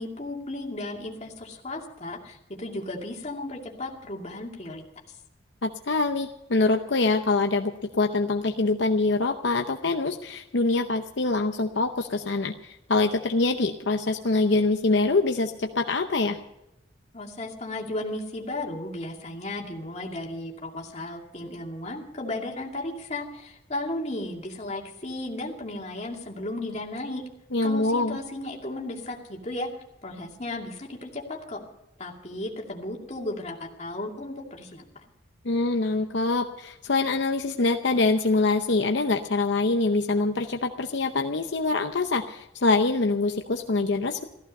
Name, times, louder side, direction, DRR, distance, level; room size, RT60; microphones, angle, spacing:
voice 1, 0.0-4.8 17.1-27.2 27.6-29.7 30.0-31.6 32.0-34.8, left 1 dB, 35° left, -1 dB, 2.4 m, -35 dB
voice 2, 5.6-16.4 27.5-28.2 35.4-44.2, left 3 dB, 70° left, 5 dB, 0.7 m, -24 dB
15.0 x 14.0 x 5.4 m, 0.90 s
head